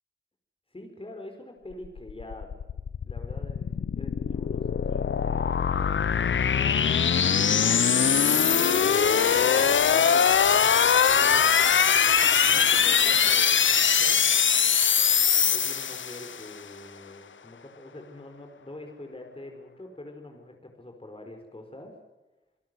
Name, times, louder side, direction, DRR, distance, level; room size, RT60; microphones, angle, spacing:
voice 1, 0.7-10.6 11.0-11.7 12.5-14.2 15.5-21.9, left 1 dB, 30° left, 3 dB, 4.9 m, -44 dB
sound 1, 1.9-16.5, left 7 dB, 75° left, 0.7 m, -22 dB
28.5 x 17.5 x 7.9 m, 1.0 s
wide cardioid pair, 65°, 20 cm